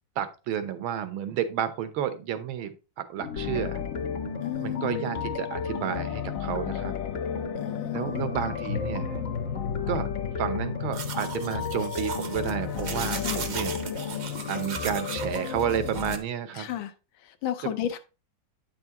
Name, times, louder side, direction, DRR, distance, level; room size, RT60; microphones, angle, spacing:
voice 1, 0.2-3.8 4.6-6.9 7.9-9.2 9.9-10.1 10.4-13.7 14.5-16.7 17.6-17.7, right 9 dB, 85° right, 1.7 m, -31 dB
sound 1, 3.2-15.9, left 7 dB, 65° left, 0.8 m, -37 dB
sound 2, 3.4-16.2, left 6 dB, 40° left, 1.0 m, -34 dB
voice 2, 4.4-5.1 7.6-8.5 13.1-13.4 16.5-18.0, left 11 dB, 85° left, 1.5 m, -34 dB
sound 3, 10.9-16.2, right 6 dB, 55° right, 0.7 m, -37 dB
8.9 x 6.0 x 2.9 m
omnidirectional pair, 2.2 m